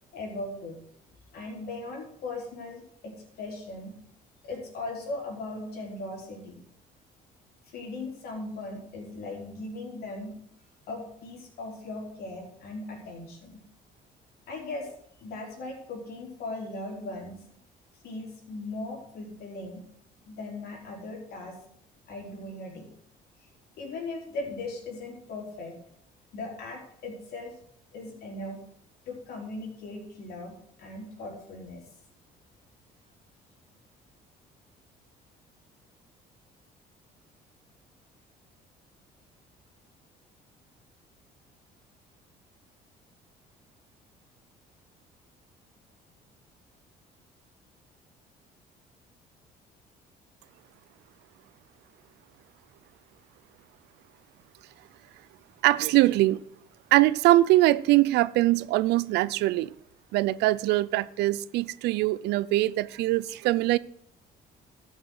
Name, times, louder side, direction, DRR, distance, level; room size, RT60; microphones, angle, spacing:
voice 1, 0.1-0.8 1.3-3.9 4.4-6.6 7.7-10.3 10.9-13.6 14.5-14.9 15.2-17.4 18.0-19.8 20.3-21.6 22.1-22.9 23.8-25.7 26.3-27.5 27.9-28.6 29.1-30.5 30.8-31.8, left 2 dB, 65° left, -1 dB, 4.1 m, -38 dB
voice 2, 55.6-56.4 56.9-59.7 60.1-63.8, right 17 dB, 85° right, 19 dB, 0.5 m, -22 dB
13.0 x 6.3 x 6.3 m, 0.68 s
cardioid pair, 110°, 17 cm